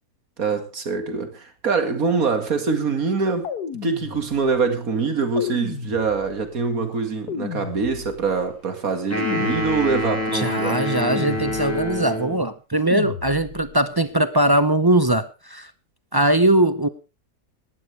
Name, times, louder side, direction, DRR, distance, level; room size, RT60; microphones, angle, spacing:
voice 1, 0.4-3.5 3.8-10.8, right 4 dB, 55° right, 2.5 m, -24 dB
sound 1, 3.4-4.7 5.4-6.5 7.3-8.4 9.2-10.2 11.1-12.0 12.9-13.8, left 8 dB, 70° left, 1.8 m, -34 dB
sound 2, 9.1-12.5, left 1 dB, 10° left, 4.6 m, -26 dB
voice 2, 10.3-15.7 16.1-16.9, right 1 dB, 25° right, 0.5 m, -20 dB
19.0 x 12.0 x 3.4 m
omnidirectional pair, 1.8 m